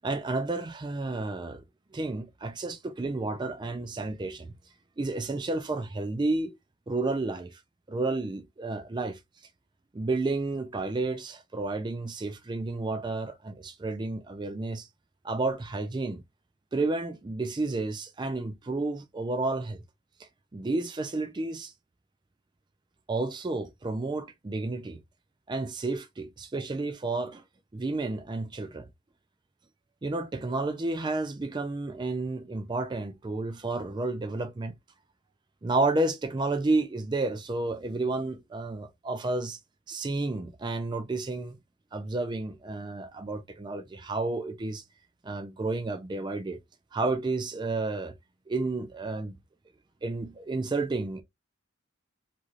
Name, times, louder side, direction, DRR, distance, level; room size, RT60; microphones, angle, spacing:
voice 1, 0.0-1.6 1.9-4.5 5.0-6.5 6.9-7.6 7.9-9.2 9.9-14.9 15.2-16.2 16.7-19.8 20.2-21.7 23.1-25.0 25.5-27.4 27.7-28.9 30.0-34.7 35.6-39.6 39.9-41.6 41.9-44.8 45.2-46.6 46.9-48.1 48.5-49.4 50.0-51.2, right 3 dB, 20° right, 0.3 m, -31 dB
3.1 x 2.5 x 2.5 m
head